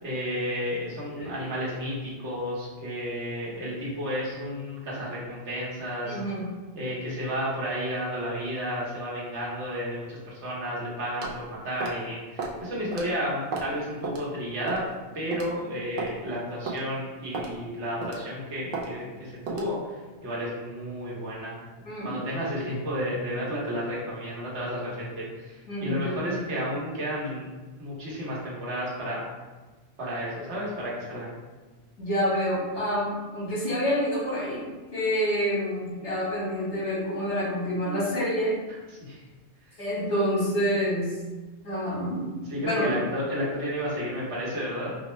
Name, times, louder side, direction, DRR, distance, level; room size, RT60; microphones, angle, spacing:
voice 1, 0.0-6.2 6.7-14.8 15.1-21.6 22.0-27.5 27.8-29.3 30.0-31.4 39.0-39.2 39.7-39.8 42.5-45.0, equal, 80° right, -6 dB, 1.3 m, -32 dB
voice 2, 6.0-6.5 21.8-22.1 25.7-26.4 32.0-34.6 34.9-38.6 39.8-41.1 41.6-42.2 42.6-43.0, equal, 85° left, -7 dB, 1.6 m, -27 dB
sound 1, 11.2-11.4 11.8-12.0 12.4-12.6 12.9-13.1 13.5-13.7 14.0-14.2 14.7-14.9 15.3-15.5 16.0-16.1 16.7-16.8 17.3-17.5 18.0-18.3 18.7-18.9 19.5-19.7, right 3 dB, 60° right, 0.7 m, -33 dB
4.4 x 2.1 x 3.0 m, 1.3 s
omnidirectional pair, 1.2 m